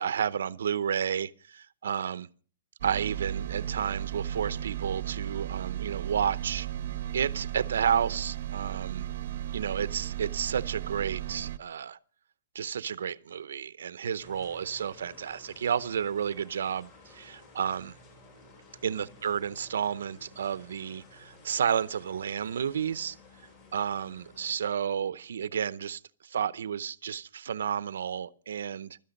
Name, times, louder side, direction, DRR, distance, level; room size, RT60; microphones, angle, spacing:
voice 1, 0.0-2.3 2.8-6.7 7.1-9.0 9.5-12.0 12.5-17.9 18.8-23.2 23.7-29.0, right 8 dB, 75° right, 0.7 m, -31 dB
sound 1, 2.8-11.6, right 12 dB, 45° right, 0.8 m, -35 dB
sound 2, 14.2-24.6, left 3 dB, 30° left, 6.0 m, -54 dB
16.0 x 13.0 x 5.3 m
hypercardioid pair, 175°, 0 cm